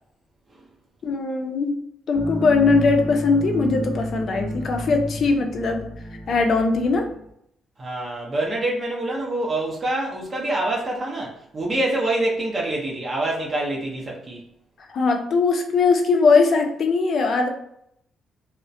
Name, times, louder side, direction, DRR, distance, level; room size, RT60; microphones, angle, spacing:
voice 1, 1.0-1.8 2.1-5.8 6.3-7.1 14.9-17.5, left 4 dB, 55° left, 4 dB, 0.5 m, -20 dB
sound 1, 2.1-7.3, left 1 dB, 5° left, 0.7 m, -31 dB
voice 2, 7.8-14.4, right 1 dB, 35° right, -3 dB, 0.6 m, -26 dB
2.3 x 2.1 x 2.6 m, 0.71 s
cardioid pair, 90°, 0 cm